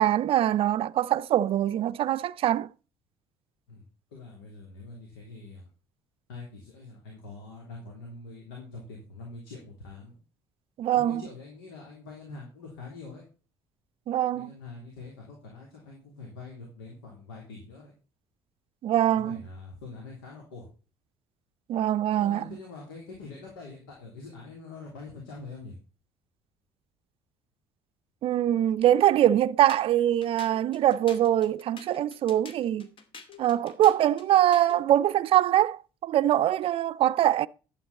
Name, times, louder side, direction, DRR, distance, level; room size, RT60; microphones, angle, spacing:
voice 1, 0.0-2.7 10.8-11.2 14.1-14.5 18.8-19.4 21.7-22.5 28.2-32.9 33.4-37.5, right 12 dB, 50° right, 0.5 m, -23 dB
voice 2, 4.1-5.6 6.3-10.2 10.9-13.2 14.3-17.9 19.1-20.7 22.2-25.8, left 3 dB, 80° left, 3.3 m, -44 dB
sound 1, 29.7-34.8, left 6 dB, 45° left, 2.4 m, -48 dB
11.5 x 8.5 x 4.2 m
hypercardioid pair, 55°, 12 cm